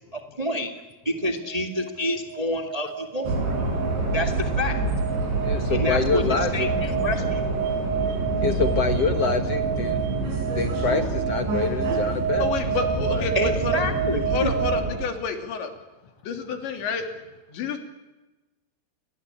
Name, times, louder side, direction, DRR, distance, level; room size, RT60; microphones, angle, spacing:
voice 1, 0.1-0.7 1.0-3.3 4.1-4.7 5.7-6.2 6.5-7.4 13.3-14.5, left 1 dB, 25° right, 5 dB, 0.7 m, -28 dB
sound 1, 1.5-14.8, right 7 dB, 55° right, 3.8 m, -30 dB
sound 2, 3.2-14.9, right 3 dB, 90° right, 8.3 m, -27 dB
voice 2, 5.4-6.7 8.4-10.0 10.5-12.5 13.1-13.3, left 5 dB, 65° left, 7 dB, 1.5 m, -26 dB
voice 3, 12.4-13.8 14.3-15.7 16.3-17.1 17.5-17.8, left 6 dB, 85° left, 5 dB, 5.2 m, -29 dB
30.0 x 22.0 x 8.7 m, 1.1 s
omnidirectional pair, 5.0 m